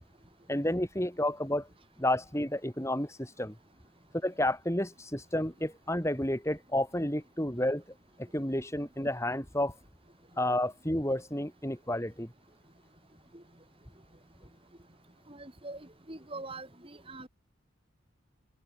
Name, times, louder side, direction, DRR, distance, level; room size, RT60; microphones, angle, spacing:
voice 1, 0.5-1.7 2.0-3.5 4.2-7.8 8.2-9.7 10.4-12.3, left 1 dB, 15° left, 4.7 m, -31 dB
voice 2, 15.3-17.3, right 2 dB, 25° right, 3.5 m, -44 dB
open air
head